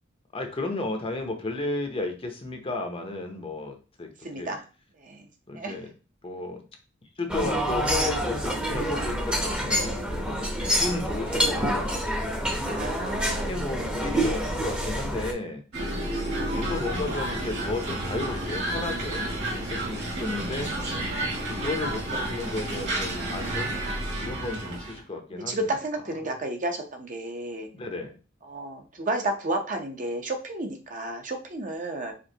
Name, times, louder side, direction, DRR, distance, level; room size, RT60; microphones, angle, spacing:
voice 1, 0.3-4.1 4.4-4.5 5.5-5.9 6.2-6.6 7.2-12.3 12.7-15.6 16.4-20.7 21.4-23.7 24.2-25.7 27.7-28.1, left 2 dB, 30° left, 4 dB, 0.7 m, -34 dB
voice 2, 4.2-4.6 5.0-5.2 5.5-5.8 8.6-8.8 10.9-11.0 12.7-13.5 16.4-16.7 20.4-20.7 24.3-24.4 25.5-27.7 28.5-32.1, right 1 dB, 40° right, 4 dB, 0.7 m, -32 dB
sound 1, 7.3-15.3, equal, 5° right, 0.8 m, -27 dB
sound 2, 15.7-25.0, right 1 dB, 60° right, 1.9 m, -30 dB
5.1 x 3.5 x 2.8 m, 0.35 s
head